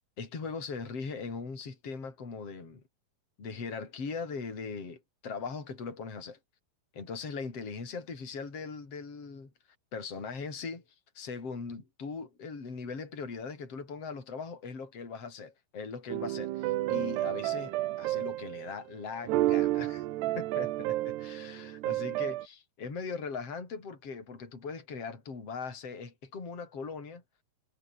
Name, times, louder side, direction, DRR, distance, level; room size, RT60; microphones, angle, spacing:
voice 1, 0.2-2.8 3.4-6.4 6.9-9.5 9.9-10.8 11.1-20.0 20.3-27.2, left 5 dB, 35° left, 6.2 m, -40 dB
sound 1, 16.1-18.7 19.2-22.5, right 16 dB, 75° right, 3.1 m, -31 dB
omnidirectional pair, 5.0 m